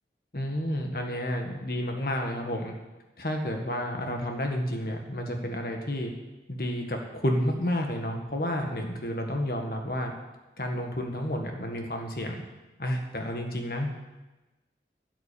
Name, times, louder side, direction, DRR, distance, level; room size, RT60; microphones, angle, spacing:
voice 1, 0.3-2.7 3.2-6.1 6.5-10.1 10.6-12.4 12.8-13.9, equal, 55° left, 3 dB, 1.7 m, -30 dB
11.0 x 8.5 x 7.0 m, 1.1 s
head